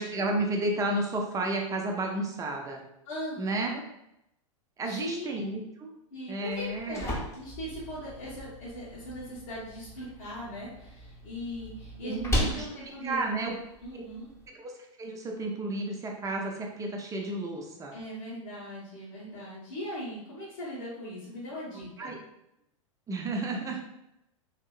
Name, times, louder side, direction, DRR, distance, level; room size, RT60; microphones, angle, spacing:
voice 1, 0.0-2.8 3.4-3.7 4.8-5.9 6.3-7.1 12.0-12.7 13.0-13.5 13.9-14.0 14.5-14.7 15.0-17.9 22.0-22.2 23.1-23.8, right 2 dB, 20° right, 1 dB, 0.6 m, -32 dB
voice 2, 3.0-3.8 4.8-5.5 6.1-13.4 13.8-14.3 17.9-22.1, equal, 80° left, -10 dB, 1.3 m, -39 dB
sound 1, 6.5-14.5, equal, 15° left, 0.9 m, -37 dB
2.8 x 2.6 x 2.4 m, 0.83 s
hypercardioid pair, 105°, 17 cm